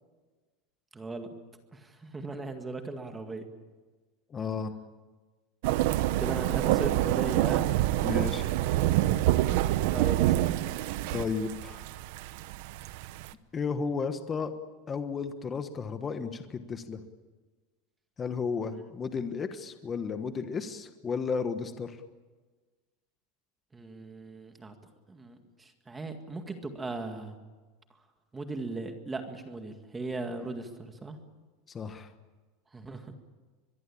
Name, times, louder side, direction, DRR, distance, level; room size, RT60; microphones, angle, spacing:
voice 1, 0.9-1.3 1.7-3.4 6.2-7.7 9.9-10.5 23.7-24.8 25.1-27.4 28.3-31.2 32.7-33.1, right 3 dB, 10° right, 6 dB, 2.0 m, -38 dB
voice 2, 4.3-4.7 8.0-8.5 11.1-11.8 13.5-14.5 14.9-17.0 18.2-22.0 31.7-32.1, left 5 dB, 15° left, 8 dB, 1.3 m, -33 dB
sound 1, 5.6-13.3, right 15 dB, 55° right, 0.9 m, -27 dB
23.0 x 22.5 x 8.7 m, 1.3 s
supercardioid pair, 175°, 0 cm